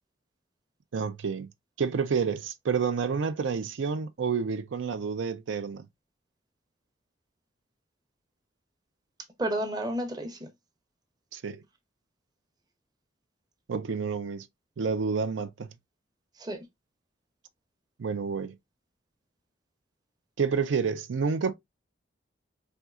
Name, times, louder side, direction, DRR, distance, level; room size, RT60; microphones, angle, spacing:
voice 1, 0.9-1.5 1.8-5.8 11.3-11.6 13.7-14.5 14.8-15.7 18.0-18.5 20.4-21.5, right 5 dB, 85° right, 0.4 m, -29 dB
voice 2, 9.4-10.5 16.4-16.6, right 1 dB, 20° right, 0.7 m, -31 dB
4.3 x 2.7 x 2.4 m
head